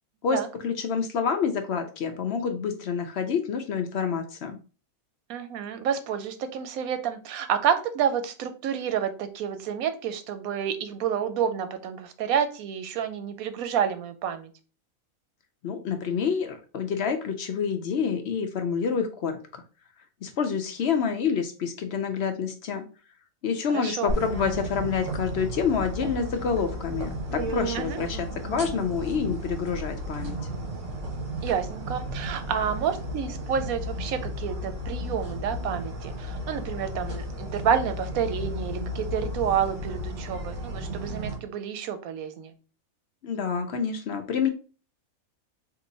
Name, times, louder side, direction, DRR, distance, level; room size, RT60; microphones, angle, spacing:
voice 1, 0.2-4.6 15.6-19.6 20.2-22.8 23.4-30.4 43.2-44.5, left 6 dB, 60° left, 6 dB, 0.7 m, -28 dB
voice 2, 5.3-14.5 23.7-24.1 27.7-28.0 31.4-42.5, right 8 dB, 85° right, 9 dB, 1.1 m, -29 dB
sound 1, 24.1-41.4, equal, 60° right, 1.6 m, -34 dB
3.7 x 2.7 x 3.9 m, 0.35 s
omnidirectional pair, 1.4 m